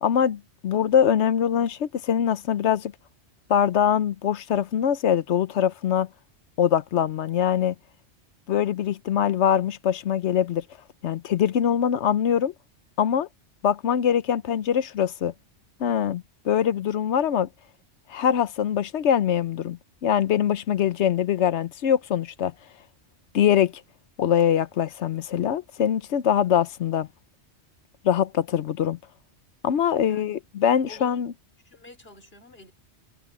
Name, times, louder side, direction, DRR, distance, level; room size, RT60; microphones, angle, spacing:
voice 1, 0.0-2.9 3.5-6.1 6.6-7.7 8.5-10.6 11.0-12.5 13.0-13.3 13.6-15.3 15.8-17.5 18.1-22.5 23.3-23.7 24.2-27.1 28.0-29.0 29.6-31.3, left 9 dB, 85° left, 1.1 m, -23 dB
voice 2, 30.0-30.4 30.8-31.2 31.6-32.7, left 2 dB, 60° left, 3.6 m, -48 dB
omnidirectional pair, 1.1 m